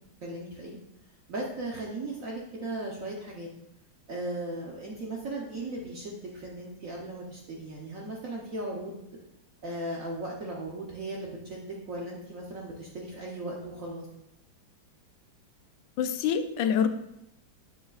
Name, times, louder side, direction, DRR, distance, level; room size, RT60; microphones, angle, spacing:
voice 1, 0.2-0.8 1.3-3.5 4.1-9.0 9.6-14.1, right 2 dB, 55° right, -2 dB, 1.1 m, -37 dB
voice 2, 16.0-16.9, left 8 dB, 75° left, 9 dB, 1.2 m, -26 dB
7.2 x 7.2 x 2.4 m, 0.82 s
omnidirectional pair, 2.0 m